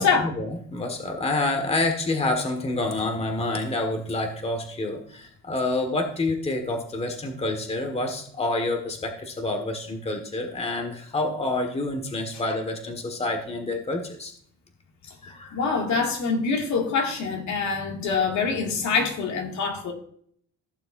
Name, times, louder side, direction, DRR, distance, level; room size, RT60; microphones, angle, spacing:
voice 1, 0.0-14.3 15.2-15.6, left 2 dB, 20° left, 1.6 m, -28 dB
voice 2, 15.5-19.9, left 5 dB, 55° left, 2.3 m, -25 dB
16.0 x 6.8 x 2.6 m
cardioid pair, 110°, 34 cm